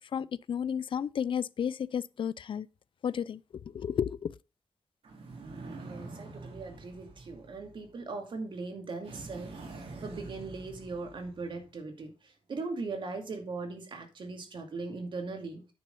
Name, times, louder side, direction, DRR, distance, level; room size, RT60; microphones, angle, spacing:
voice 1, 0.0-2.7 3.0-3.4 3.7-4.3, left 8 dB, 60° left, 0.4 m, -32 dB
sound 1, 5.0-8.1 9.0-11.7, right 3 dB, 85° right, 3.7 m, -46 dB
voice 2, 5.8-15.6, right 3 dB, 60° right, 2.4 m, -39 dB
9.7 x 6.3 x 5.4 m
wide cardioid pair, 145°, 10 cm